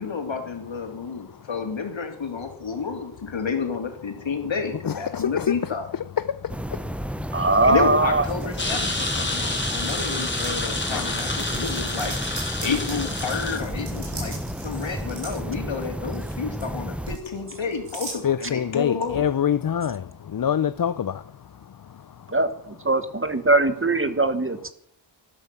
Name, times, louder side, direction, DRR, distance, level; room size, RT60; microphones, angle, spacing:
voice 1, 0.0-5.9 7.7-12.2 12.6-19.2, left 5 dB, 65° left, 3.2 m, -30 dB
voice 2, 4.9-7.4 10.9-11.2 14.2-14.8 18.2-22.3, left 8 dB, 45° left, 0.6 m, -28 dB
sound 1, 6.5-17.2, equal, 5° right, 0.5 m, -32 dB
voice 3, 7.3-8.2 22.3-24.7, right 2 dB, 25° right, 1.2 m, -21 dB
sound 2, 8.2-9.1 9.7-10.0 10.4-10.6 11.1-15.4 15.8-16.3 16.6-18.2, right 3 dB, 90° right, 7.4 m, -39 dB
sound 3, 8.6-13.6, left 2 dB, 20° left, 3.4 m, -29 dB
13.5 x 12.0 x 6.9 m
wide cardioid pair, 115°, 49 cm